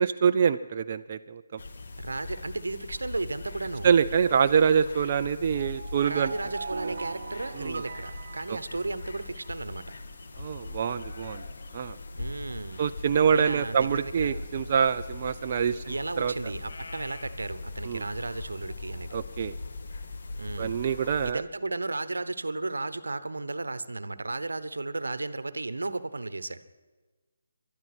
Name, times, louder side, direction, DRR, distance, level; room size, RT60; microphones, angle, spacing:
voice 1, 0.0-1.6 3.8-6.3 7.5-7.8 8.5-8.6 10.4-11.4 11.7-12.0 12.8-16.3 17.9-18.0 19.1-19.5 20.6-21.4, right 7 dB, 40° right, 8 dB, 0.5 m, -25 dB
Scottish Highland, 1.6-21.3, left 3 dB, 65° left, 1.7 m, -41 dB
voice 2, 2.0-3.9 6.0-9.8 12.2-12.8 13.3-14.4 15.9-19.2 20.4-20.8 21.2-26.6, right 2 dB, 85° right, 15 dB, 1.0 m, -34 dB
sound 1, 5.5-9.5, right 5 dB, 60° right, 1.1 m, -41 dB
19.0 x 12.5 x 6.1 m, 1.3 s
figure-of-eight pair, 155°, 0 cm